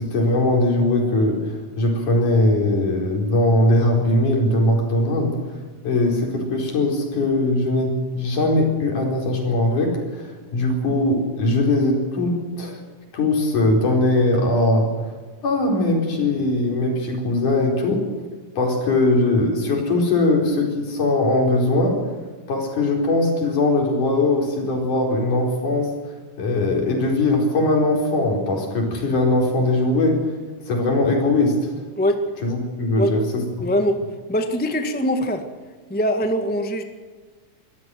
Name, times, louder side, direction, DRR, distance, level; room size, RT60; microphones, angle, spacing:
voice 1, 0.0-5.3 5.8-12.7 13.1-15.1 15.4-18.0 18.6-21.9 22.5-25.9 26.4-30.2 30.7-31.7 32.4-33.2, left 2 dB, 70° left, 1 dB, 6.1 m, -20 dB
voice 2, 33.6-34.0 34.3-35.4 35.9-36.8, equal, 5° left, 6 dB, 0.8 m, -22 dB
24.5 x 15.5 x 7.9 m, 1.4 s
omnidirectional pair, 3.7 m